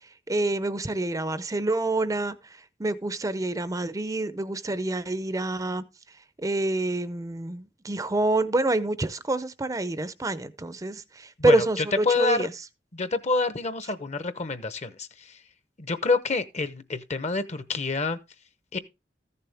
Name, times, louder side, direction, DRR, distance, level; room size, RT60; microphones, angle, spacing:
voice 1, 0.3-2.3 2.8-5.8 6.4-12.5, right 2 dB, 20° right, 0.5 m, -27 dB
voice 2, 11.5-12.5 12.9-15.4 15.8-18.2 18.7-18.8, left 3 dB, 40° left, 0.8 m, -27 dB
14.0 x 6.9 x 3.4 m
head